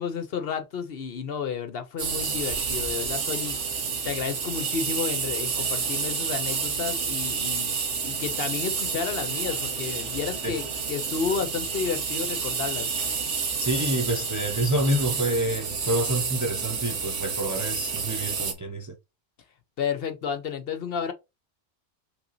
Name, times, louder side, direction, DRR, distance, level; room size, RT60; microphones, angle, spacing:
voice 1, 0.0-7.8 8.0-12.9 19.8-21.1, left 6 dB, 60° left, 0.8 m, -31 dB
sound 1, 2.0-18.5, right 5 dB, 80° right, 1.4 m, -29 dB
voice 2, 13.6-18.9, right 1 dB, 20° right, 0.5 m, -27 dB
5.7 x 3.2 x 2.6 m
omnidirectional pair, 1.2 m